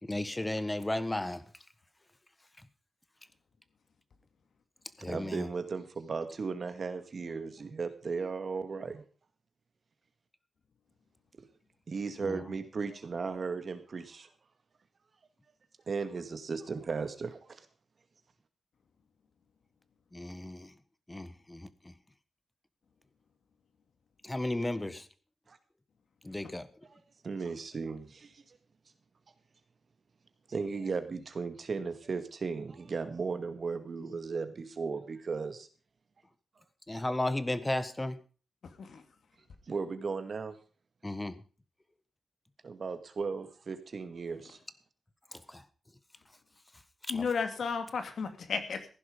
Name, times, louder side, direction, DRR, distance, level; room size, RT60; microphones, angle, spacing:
voice 1, 0.0-1.4 5.0-5.5 12.3-12.4 20.1-20.7 21.1-21.9 24.2-25.1 26.2-26.7 36.9-38.2 41.0-41.4 45.3-45.6 47.0-47.3, left 1 dB, 15° left, 1.3 m, -34 dB
voice 2, 5.0-9.0 11.9-14.3 15.9-17.7 25.5-25.6 26.9-28.6 30.5-35.7 39.7-40.5 42.6-44.6, right 4 dB, 55° right, 2.1 m, -36 dB
voice 3, 47.1-48.9, left 5 dB, 70° left, 2.3 m, -33 dB
15.5 x 11.0 x 5.1 m
wide cardioid pair, 95°, 0 cm